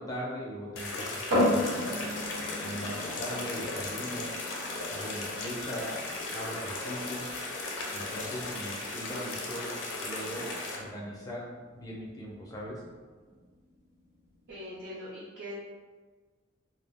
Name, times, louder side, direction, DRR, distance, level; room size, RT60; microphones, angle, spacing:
voice 1, 0.0-1.9 2.6-4.3 4.9-5.9 6.3-7.3 7.9-9.7 10.0-11.4 11.7-12.8 13.3-13.4, equal, 15° left, -5 dB, 0.4 m, -39 dB
sound 1, 0.8-10.8, left 2 dB, 70° left, 0.5 m, -36 dB
sound 2, 1.3-14.8, left 1 dB, 80° right, 0.9 m, -36 dB
voice 2, 14.5-15.6, left 1 dB, 60° right, -10 dB, 0.5 m, -41 dB
2.3 x 2.0 x 3.3 m, 1.4 s
head